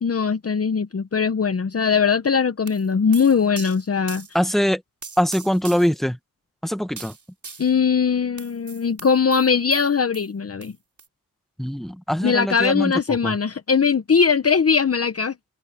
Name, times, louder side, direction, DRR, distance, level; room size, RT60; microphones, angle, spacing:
voice 1, 0.0-4.3 7.6-10.7 12.2-15.3, left 6 dB, 45° left, 0.9 m, -20 dB
sound 1, 2.7-4.4 5.0-6.0 7.0-7.7 8.4-10.3 10.6-10.7 11.0-11.1, right 5 dB, 60° right, 4.1 m, -40 dB
voice 2, 4.3-4.8 5.2-6.2 6.6-7.1 11.6-13.4, equal, ahead, 1.8 m, -23 dB
cardioid pair, 65°, 34 cm